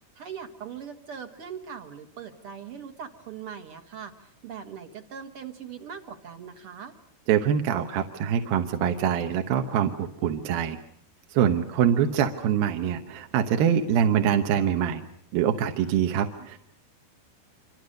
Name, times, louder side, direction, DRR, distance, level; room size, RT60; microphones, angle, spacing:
voice 1, 0.2-4.1 4.4-6.9 11.9-12.1 16.3-16.5, right 7 dB, 50° right, 7 dB, 1.8 m, -40 dB
voice 2, 7.3-10.8 11.3-15.1 15.3-16.6, right 9 dB, 70° right, 6 dB, 2.8 m, -24 dB
26.5 x 25.5 x 6.6 m, 0.66 s
omnidirectional pair, 4.8 m